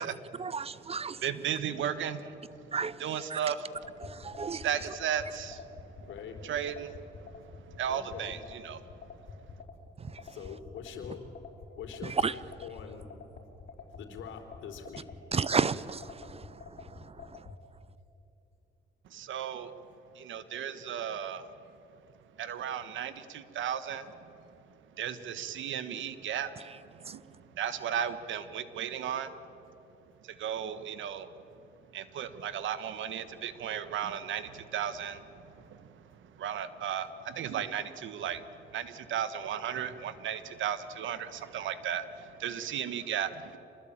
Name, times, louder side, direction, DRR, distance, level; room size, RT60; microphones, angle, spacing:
voice 1, 0.4-1.2 2.7-3.0 3.3-3.4 4.0-4.7 10.0-10.3 12.0-12.3 15.3-17.5 27.0-27.2, right 5 dB, 30° right, 0.6 m, -33 dB
voice 2, 1.2-2.7 3.0-3.9 4.5-6.1 6.4-8.8 19.1-19.7 20.1-21.5 22.4-24.3 25.0-29.3 30.2-31.3 31.9-43.6, right 9 dB, 75° right, 1.4 m, -35 dB
sound 1, 3.8-17.5, left 5 dB, 55° left, 4.8 m, -46 dB
voice 3, 6.1-6.4 7.9-8.4 10.2-11.2 11.7-13.1 14.0-15.1, left 7 dB, 80° left, 3.7 m, -44 dB
26.5 x 20.5 x 8.9 m
cardioid pair, 90°, 20 cm